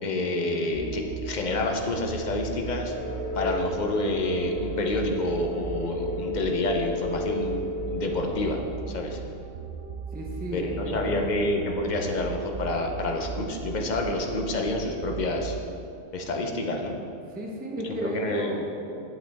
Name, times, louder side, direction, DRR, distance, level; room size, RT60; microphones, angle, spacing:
voice 1, 0.0-2.9 3.3-7.6 7.9-8.6 8.9-9.2 10.5-15.6 16.1-17.0 17.8-18.8, left 2 dB, 45° left, 2 dB, 0.6 m, -28 dB
sound 1, 0.7-15.9, right 6 dB, 75° right, 0.5 m, -38 dB
sound 2, 2.8-8.3, left 2 dB, 80° left, 2.3 m, -33 dB
voice 2, 10.1-11.2 17.3-19.1, right 1 dB, 10° right, -1 dB, 0.6 m, -34 dB
8.6 x 7.9 x 3.5 m, 2.6 s
omnidirectional pair, 1.6 m